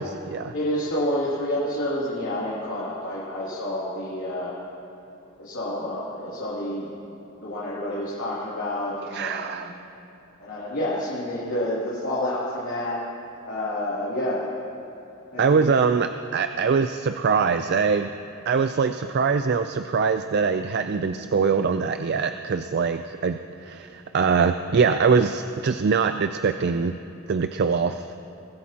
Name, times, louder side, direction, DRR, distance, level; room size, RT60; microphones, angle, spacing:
voice 1, 0.0-0.5 9.1-9.7 15.4-18.1 18.5-26.9 27.3-28.1, right 5 dB, 50° right, 8 dB, 0.4 m, -23 dB
voice 2, 0.5-4.5 5.4-9.7 10.4-13.0 13.5-14.4 15.3-15.6, left 1 dB, 70° left, -9 dB, 2.8 m, -29 dB
23.0 x 15.5 x 2.9 m, 2.7 s
head